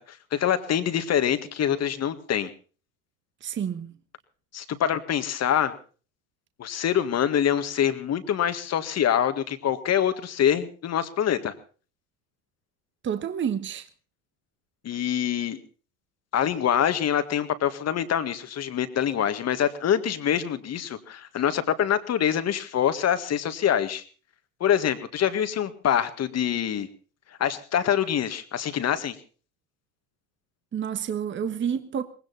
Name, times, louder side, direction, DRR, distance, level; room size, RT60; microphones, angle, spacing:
voice 1, 0.0-2.5 4.5-5.8 6.6-11.5 14.8-15.6 16.3-24.0 24.6-26.9 27.4-29.2, left 9 dB, 35° left, 1.9 m, -25 dB
voice 2, 3.4-3.9 13.0-13.9 30.7-32.0, right 8 dB, 25° right, 1.3 m, -29 dB
19.5 x 17.0 x 4.1 m
hypercardioid pair, 90°, 42 cm